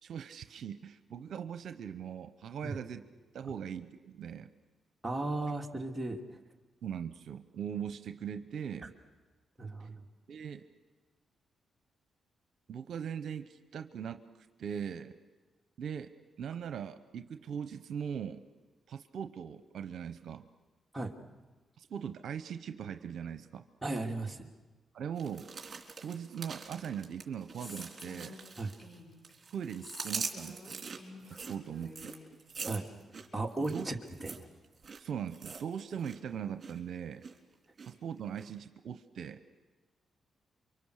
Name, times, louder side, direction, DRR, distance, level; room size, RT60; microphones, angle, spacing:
voice 1, 0.0-3.0 3.3-4.5 6.8-8.9 9.8-9.9 10.3-10.6 12.7-15.1 15.8-16.1 16.4-18.4 18.9-20.5 21.8-23.6 24.9-25.5 26.0-28.4 29.5-30.8 31.2-32.1 33.7-33.9 35.0-37.2 37.9-39.4, right 8 dB, 75° right, 9 dB, 0.8 m, -40 dB
voice 2, 5.0-6.2 8.8-8.9 9.6-10.0 20.9-21.1 23.8-24.5 28.6-28.7 32.6-32.9 33.3-34.5, right 2 dB, 15° right, 1 dB, 2.7 m, -36 dB
sound 1, 25.2-29.0 29.2-36.2 36.4-36.8 37.2-37.9 38.4-38.5, right 5 dB, 45° right, 3.4 m, -43 dB
Female speech woman speaking, 27.6-29.3 29.8-32.3, left 1 dB, 35° left, 7.1 m, -50 dB
29.0 x 24.5 x 6.6 m, 1.2 s
cardioid pair, 60°, 0 cm